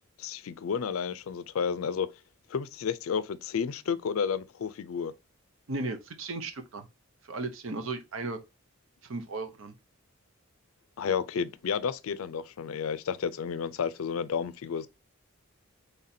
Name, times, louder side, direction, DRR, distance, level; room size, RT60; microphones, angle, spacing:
voice 1, 0.2-2.1 2.5-5.1 11.0-14.9, left 6 dB, 80° left, 0.4 m, -31 dB
voice 2, 5.7-6.9 7.2-8.4 9.0-9.7, right 3 dB, 70° right, 0.7 m, -35 dB
4.1 x 3.3 x 2.7 m
head